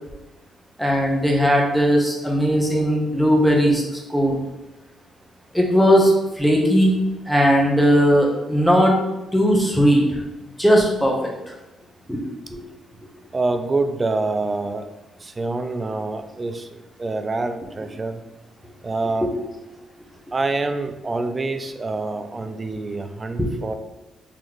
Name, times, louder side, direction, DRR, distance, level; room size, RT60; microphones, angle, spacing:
voice 1, 0.8-3.8 4.1-4.4 5.5-6.9 7.3-8.9 9.3-10.0 10.6-11.3 12.1-12.2 12.5-12.6 19.2-19.3 23.4-23.5, equal, ahead, -1 dB, 0.9 m, -18 dB
voice 2, 13.3-14.8 15.2-16.7 17.0-18.2 18.8-19.4 20.3-23.7, right 3 dB, 25° right, 8 dB, 0.4 m, -26 dB
3.9 x 3.0 x 3.0 m, 0.99 s
cardioid pair, 90°, 0 cm